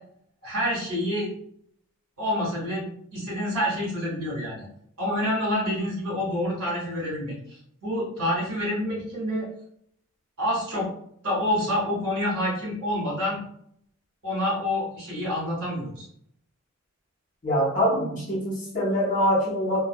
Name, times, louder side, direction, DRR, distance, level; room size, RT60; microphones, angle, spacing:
voice 1, 0.4-1.3 2.2-4.6 5.0-9.5 10.4-10.9 11.2-13.4 14.2-16.0, left 1 dB, 75° right, -4 dB, 1.4 m, -27 dB
voice 2, 17.4-19.8, equal, 35° left, -4 dB, 0.7 m, -24 dB
2.7 x 2.3 x 2.2 m, 0.68 s
head